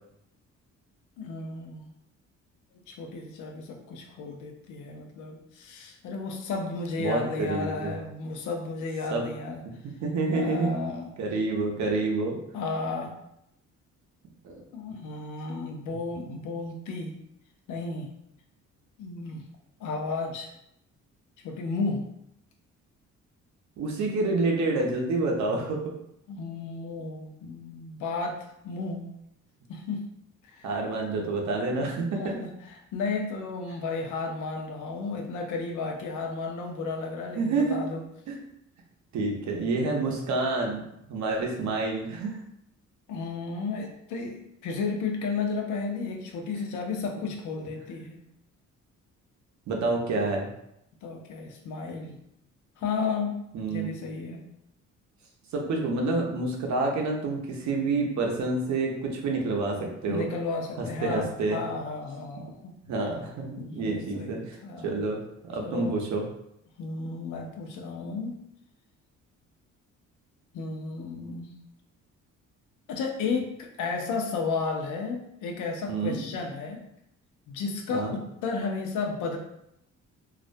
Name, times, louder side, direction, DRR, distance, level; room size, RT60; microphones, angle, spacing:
voice 1, 1.2-1.9 2.9-9.6 10.3-11.1 12.5-13.2 14.7-17.1 17.7-18.1 19.0-19.4 19.8-20.5 21.4-22.0 26.3-29.1 29.7-30.0 30.5-30.7 31.0-31.1 32.2-32.5 32.9-38.0 43.1-48.2 51.0-52.2 52.8-53.4 53.7-54.4 60.1-62.7 63.6-65.0 65.6-65.9 66.8-68.4 70.5-71.5 72.9-76.8 77.5-79.4, left 4 dB, 80° left, 3 dB, 0.5 m, -33 dB
voice 2, 7.0-8.0 9.1-9.2 9.8-10.7 11.2-12.4 14.4-14.6 16.3-16.4 23.8-25.9 30.6-32.4 37.3-37.8 38.3-38.4 39.1-40.8 41.1-42.4 49.7-50.5 53.5-53.9 55.5-60.3 61.0-61.6 62.8-64.6 64.8-65.2 65.4-66.2 75.9-76.2 77.9-78.1, right 3 dB, 70° right, 1 dB, 0.6 m, -28 dB
2.3 x 2.1 x 2.5 m, 0.79 s
cardioid pair, 90°, 30 cm